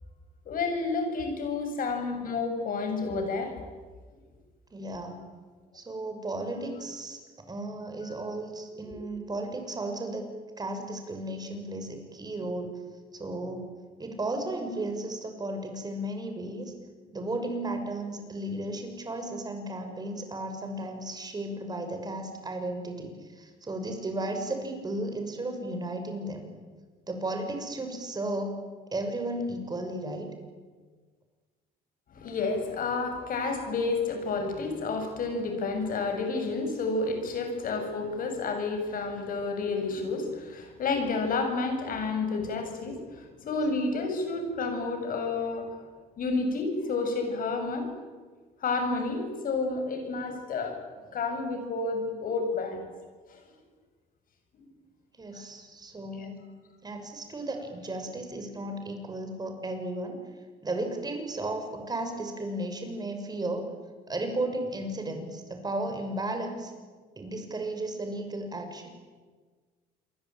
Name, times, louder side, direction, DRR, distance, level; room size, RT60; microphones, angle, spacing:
voice 1, 0.5-3.5 32.1-45.7 46.2-47.9 48.6-50.8 51.1-52.8 53.3-53.4 55.3-55.4 56.2-56.3, left 3 dB, 55° left, 6 dB, 7.4 m, -30 dB
voice 2, 4.7-5.2 5.7-7.2 7.5-10.3 10.6-12.7 13.1-13.6 14.0-16.7 17.1-26.5 27.1-28.6 28.9-30.3 55.2-56.4 56.8-60.2 60.6-63.7 64.1-66.7 67.2-68.9, right 1 dB, 25° right, 5 dB, 6.4 m, -34 dB
28.0 x 23.5 x 9.1 m, 1.4 s
cardioid pair, 110°, 17 cm